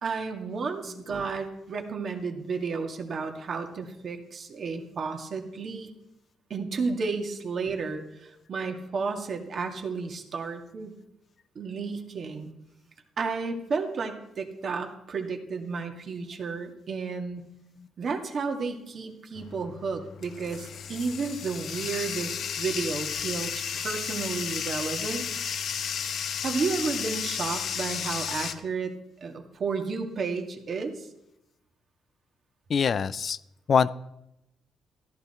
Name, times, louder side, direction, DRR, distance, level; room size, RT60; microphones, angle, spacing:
voice 1, 0.0-5.9 6.5-10.9 11.6-12.5 13.2-17.4 18.0-25.2 26.4-28.9 29.2-31.1, right 4 dB, 50° right, 4 dB, 2.1 m, -32 dB
Bathtub (filling or washing), 19.3-28.5, left 7 dB, 65° left, 1.0 m, -33 dB
voice 2, 32.7-33.4 33.7-33.9, left 6 dB, 50° left, 16 dB, 0.5 m, -23 dB
14.0 x 12.5 x 4.4 m, 0.86 s
cardioid pair, 90°, 0 cm